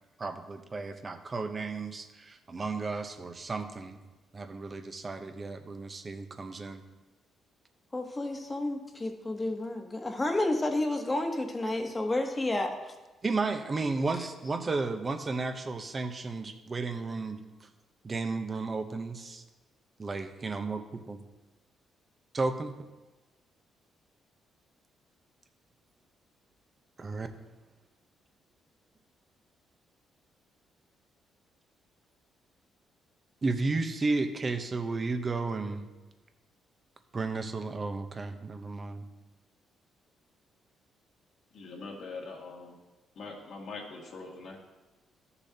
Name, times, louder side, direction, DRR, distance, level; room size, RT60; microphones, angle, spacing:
voice 1, 0.2-4.0 4.3-6.8 13.2-17.7 18.0-19.4 20.0-21.2 22.3-22.8 27.0-27.3 33.4-35.9 37.1-39.1, right 3 dB, 30° right, 7 dB, 0.8 m, -33 dB
voice 2, 7.9-12.7, left 2 dB, 20° left, 4 dB, 1.2 m, -30 dB
voice 3, 41.5-42.8 43.2-44.6, left 3 dB, 65° left, -1 dB, 1.9 m, -42 dB
13.0 x 6.9 x 2.9 m, 1.2 s
cardioid pair, 90°, 0 cm